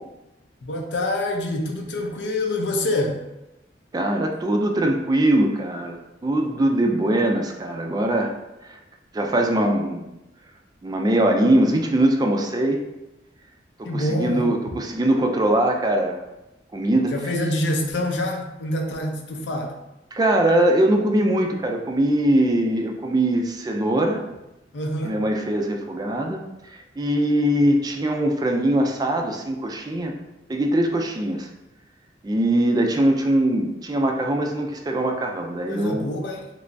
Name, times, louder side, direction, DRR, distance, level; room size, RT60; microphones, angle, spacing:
voice 1, 0.6-3.2 13.8-14.5 17.1-19.7 24.7-25.2 35.7-36.5, left 1 dB, 80° left, 2 dB, 0.5 m, -26 dB
voice 2, 3.9-8.3 8.6-8.8 9.1-10.0 10.8-12.8 13.8-16.2 16.7-17.1 20.1-24.2 25.0-26.4 27.0-30.1 30.5-31.5 32.2-36.0, right 1 dB, 20° right, 3 dB, 0.3 m, -21 dB
3.2 x 3.0 x 2.6 m, 0.94 s
head